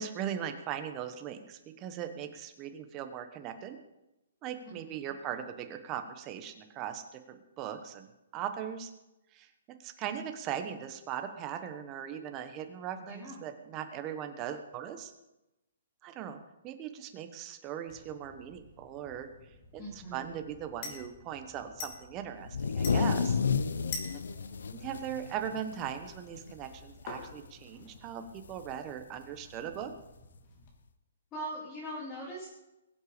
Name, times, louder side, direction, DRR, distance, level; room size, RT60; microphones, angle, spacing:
voice 1, 0.0-3.8 4.4-8.9 9.3-9.5 9.8-15.1 16.0-19.3 19.7-23.4 24.7-29.9, right 9 dB, 20° right, 7 dB, 1.2 m, -39 dB
voice 2, 13.0-13.4 19.8-20.4 31.3-32.5, right 1 dB, 15° left, -5 dB, 3.0 m, -41 dB
sound 1, 17.9-30.7, left 4 dB, 35° left, 3.2 m, -48 dB
sound 2, 22.4-26.2 26.5-26.6 27.0-27.5 28.6-28.7 29.7-29.8, left 5 dB, 85° left, 0.8 m, -31 dB
21.5 x 8.1 x 5.2 m, 0.95 s
hypercardioid pair, 170°, 0 cm